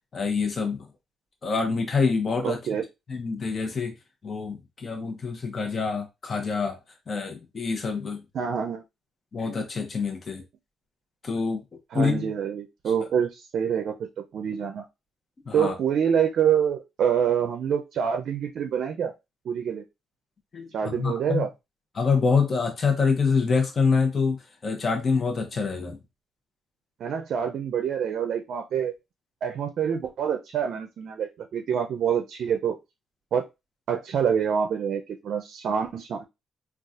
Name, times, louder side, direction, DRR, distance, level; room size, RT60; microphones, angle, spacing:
voice 1, 0.1-0.8 1.4-2.6 3.1-3.9 4.2-6.8 7.1-8.2 9.3-10.4 11.2-11.6 11.9-12.3 15.4-15.8 20.5-21.4 21.9-24.4 24.6-26.0, left 5 dB, 40° left, 0.9 m, -26 dB
voice 2, 2.4-2.8 8.3-8.8 11.9-14.8 15.5-19.1 19.5-19.8 20.7-21.5 27.0-28.9 29.4-32.8 33.3-33.5 33.9-36.2, right 8 dB, 65° right, 0.4 m, -26 dB
3.9 x 2.4 x 2.4 m
cardioid pair, 100°, 0 cm